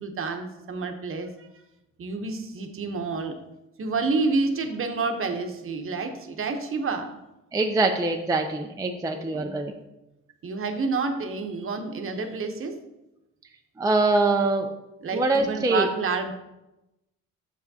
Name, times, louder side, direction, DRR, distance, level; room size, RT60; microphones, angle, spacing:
voice 1, 0.0-1.5 2.0-3.3 3.8-7.1 9.1-9.5 10.4-12.7 15.0-16.3, right 4 dB, 45° right, 5 dB, 0.8 m, -29 dB
voice 2, 7.5-9.7 13.8-14.7 15.1-15.9, right 2 dB, 10° right, 4 dB, 0.4 m, -23 dB
6.2 x 5.8 x 2.7 m, 0.94 s
cardioid pair, 90°, 30 cm